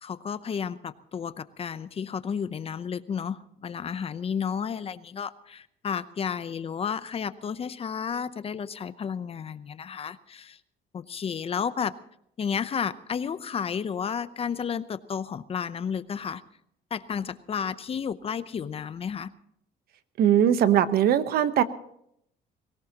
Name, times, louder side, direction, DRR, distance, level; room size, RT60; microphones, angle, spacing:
voice 1, 0.0-10.6 10.9-11.9 12.4-16.4 16.9-19.3, left 7 dB, 35° left, 14 dB, 0.7 m, -32 dB
voice 2, 20.2-21.6, right 10 dB, 65° right, 12 dB, 1.0 m, -20 dB
22.0 x 18.0 x 3.0 m, 0.72 s
cardioid pair, 110°, 17 cm